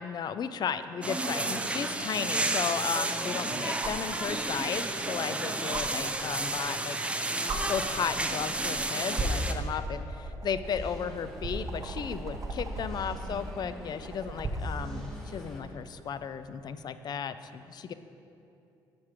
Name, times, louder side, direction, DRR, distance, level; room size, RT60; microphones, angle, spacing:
voice 1, 0.0-7.0 7.4-17.9, left 7 dB, 50° left, 12 dB, 0.3 m, -35 dB
sound 1, 1.0-9.5, right 2 dB, 15° right, 0.5 m, -31 dB
sound 2, 3.8-4.1 5.7-5.8 7.0-7.1 7.5-7.6 8.5-8.8 9.1-14.8 16.5-16.6, right 2 dB, 35° right, 0.8 m, -36 dB
sound 3, 10.6-15.6, equal, 5° left, 1.5 m, -46 dB
6.1 x 5.8 x 4.8 m, 2.8 s
supercardioid pair, 70°, 9 cm